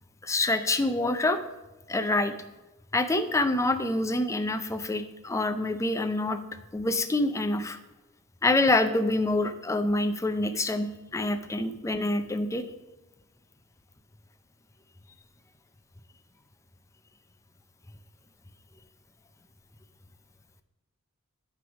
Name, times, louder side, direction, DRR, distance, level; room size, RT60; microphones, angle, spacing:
voice 1, 0.2-1.4 1.9-2.3 2.9-6.4 6.7-7.8 8.4-12.6, left 2 dB, 15° left, 9 dB, 0.4 m, -26 dB
9.8 x 3.3 x 6.0 m, 1.1 s
head